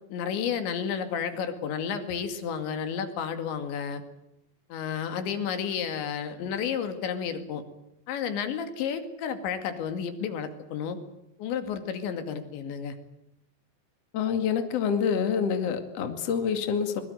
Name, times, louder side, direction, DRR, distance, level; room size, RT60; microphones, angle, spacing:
voice 1, 0.1-4.0 4.7-7.6 8.1-11.0 11.4-13.0, left 7 dB, 90° left, 8 dB, 4.6 m, -31 dB
voice 2, 14.1-17.0, left 7 dB, 45° left, 7 dB, 2.7 m, -27 dB
25.0 x 21.5 x 8.0 m, 0.84 s
omnidirectional pair, 5.0 m